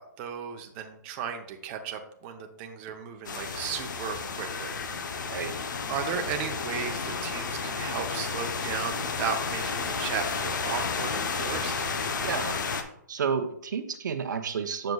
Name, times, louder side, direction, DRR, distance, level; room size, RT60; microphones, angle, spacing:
voice 1, 0.0-4.8 5.9-11.8, right 7 dB, 30° right, 4 dB, 0.7 m, -35 dB
sound 1, 3.2-12.8, left 5 dB, 75° left, 0.8 m, -32 dB
voice 2, 12.2-12.6 13.1-14.9, right 6 dB, 75° right, 7 dB, 0.7 m, -30 dB
7.8 x 6.6 x 2.3 m, 0.71 s
hypercardioid pair, 145°, 10 cm